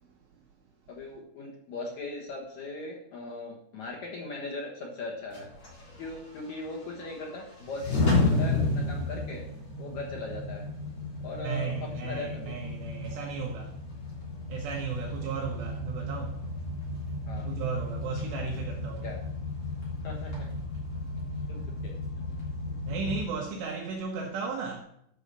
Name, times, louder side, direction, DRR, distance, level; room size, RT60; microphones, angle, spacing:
voice 1, 0.9-5.5 6.0-9.5 9.8-10.7 11.2-12.5 15.2-15.3 17.3-17.5 19.0-19.2 20.0-20.5 21.5-22.0 22.3-22.4, left 3 dB, 75° left, 1.7 m, -39 dB
sound 1, 5.3-23.2, left 2 dB, 35° left, 4.2 m, -33 dB
voice 2, 11.4-13.7 14.5-16.5 17.4-19.1 22.8-24.8, right 5 dB, 75° right, 3.0 m, -35 dB
11.0 x 5.5 x 6.6 m
omnidirectional pair, 5.3 m